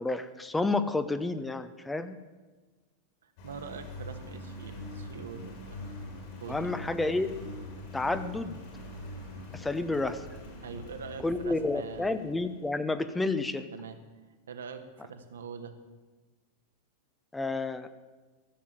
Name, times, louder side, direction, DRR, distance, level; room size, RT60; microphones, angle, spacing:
voice 1, 0.0-2.2 6.5-7.3 7.9-8.6 9.5-10.3 11.2-13.7 17.3-17.9, left 2 dB, 10° left, 11 dB, 0.7 m, -30 dB
voice 2, 3.2-5.8 6.4-6.8 10.6-12.2 13.7-14.0 14.5-15.8, right 6 dB, 65° right, 7 dB, 1.3 m, -43 dB
Engine, 3.4-12.8, left 1 dB, 50° left, 4.2 m, -43 dB
14.5 x 7.3 x 8.8 m, 1.3 s
figure-of-eight pair, 90°, 0 cm